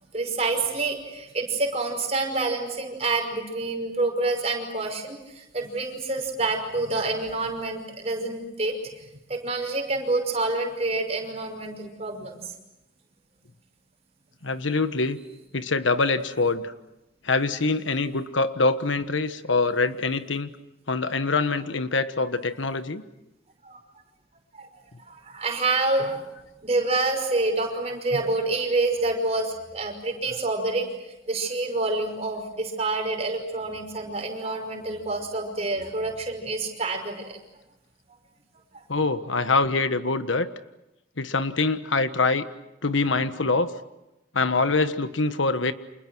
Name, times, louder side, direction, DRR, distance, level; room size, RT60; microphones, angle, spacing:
voice 1, 0.1-12.5 23.6-23.8 24.5-24.7 25.1-26.2 26.6-30.9 31.3-37.4 38.7-38.8, right 2 dB, 35° right, 3 dB, 5.5 m, -27 dB
voice 2, 14.4-15.2 15.5-16.7 17.2-20.5 20.9-23.0 38.9-40.5 41.2-42.4 42.8-43.7 44.3-45.7, left 3 dB, 85° left, 10 dB, 1.4 m, -24 dB
30.0 x 27.5 x 6.3 m, 0.94 s
head